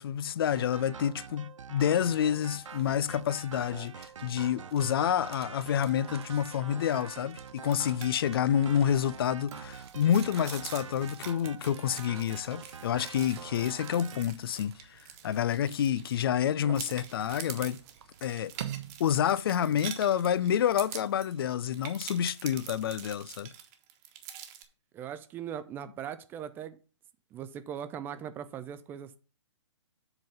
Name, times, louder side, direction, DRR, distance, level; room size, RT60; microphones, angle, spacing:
voice 1, 0.0-17.8 18.2-18.5 19.0-23.5, left 9 dB, 50° left, 0.4 m, -28 dB
sound 1, 0.5-14.2, right 6 dB, 85° right, 0.4 m, -46 dB
sound 2, 2.1-19.9, right 10 dB, 55° right, 0.8 m, -51 dB
sound 3, 7.6-8.1 8.4-8.5 8.9-16.4 16.7-24.6, right 10 dB, 30° right, 1.3 m, -45 dB
voice 2, 24.9-26.8 27.3-29.2, right 9 dB, 15° right, 0.4 m, -39 dB
7.8 x 3.8 x 5.7 m
hypercardioid pair, 135°, 16 cm